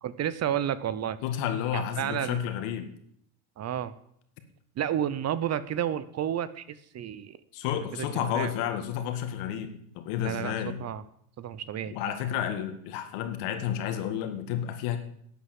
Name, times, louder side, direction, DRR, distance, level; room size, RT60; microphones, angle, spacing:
voice 1, 0.0-1.2 1.7-2.4 3.6-3.9 4.8-7.4 7.9-8.5 10.2-10.5 10.8-11.0 11.4-11.9, right 10 dB, 35° right, 16 dB, 0.8 m, -31 dB
voice 2, 1.2-2.9 7.5-10.8 11.9-15.0, left 10 dB, 75° left, 8 dB, 2.1 m, -31 dB
11.5 x 8.3 x 7.8 m, 0.69 s
supercardioid pair, 110°, 44 cm